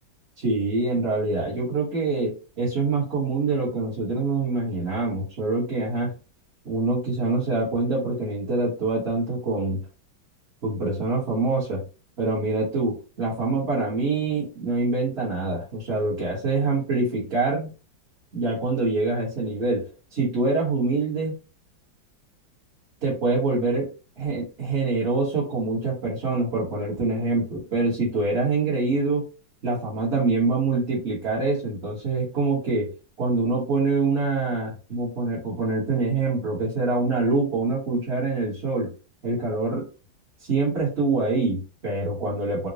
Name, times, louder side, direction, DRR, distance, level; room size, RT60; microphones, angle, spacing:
voice 1, 0.4-6.1 6.6-9.8 10.6-11.8 12.2-17.7 18.3-21.3 23.0-23.9 24.2-29.2 29.6-32.9 33.2-38.9 39.2-39.9 40.4-42.7, right 3 dB, 40° right, -7 dB, 1.2 m, -25 dB
3.9 x 2.2 x 2.7 m, 0.34 s
omnidirectional pair, 2.1 m